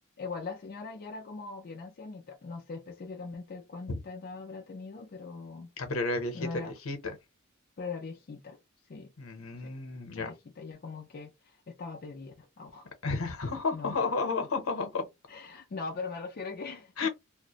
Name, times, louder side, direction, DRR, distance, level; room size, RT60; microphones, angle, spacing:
voice 1, 0.2-5.7 6.3-6.7 7.8-8.6 8.9-9.1 9.6-9.7 10.1-12.9 13.7-14.1 15.3-17.1, left 4 dB, 45° left, 0.4 m, -41 dB
voice 2, 5.8-7.2 9.2-10.3 13.0-15.1 17.0-17.1, left 3 dB, 75° left, 0.8 m, -32 dB
2.4 x 2.1 x 2.8 m
head